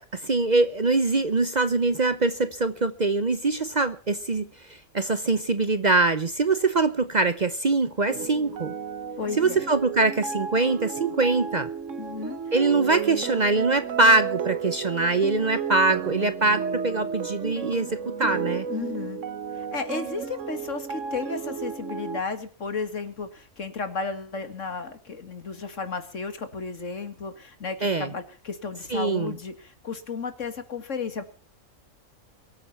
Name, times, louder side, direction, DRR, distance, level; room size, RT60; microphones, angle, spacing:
voice 1, 0.0-8.7 9.4-11.7 12.5-18.7 27.8-28.1 28.9-29.3, right 3 dB, 40° right, 0.8 m, -23 dB
sound 1, 8.1-22.2, right 6 dB, 70° right, 1.4 m, -32 dB
voice 2, 9.2-9.6 12.0-12.4 18.7-19.2 19.5-31.2, left 4 dB, 65° left, 2.3 m, -33 dB
23.0 x 8.9 x 5.8 m
omnidirectional pair, 1.4 m